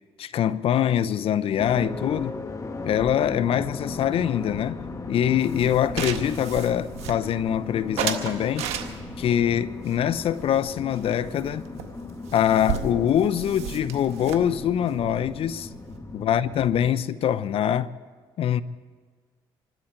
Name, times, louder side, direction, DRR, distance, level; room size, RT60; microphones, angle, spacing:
voice 1, 0.2-2.3 2.8-8.7 9.2-11.7 12.3-15.7 16.1-17.9 18.4-18.6, left 10 dB, 65° left, 0.6 m, -24 dB
sound 1, 1.6-16.9, left 3 dB, 30° left, 1.7 m, -37 dB
sound 2, 5.4-7.5 8.0-9.3 9.8-11.1 11.4-11.5 11.8-11.9 12.1-16.0, right 8 dB, 80° right, 1.5 m, -34 dB
26.5 x 12.0 x 4.5 m
supercardioid pair, 60°, 11 cm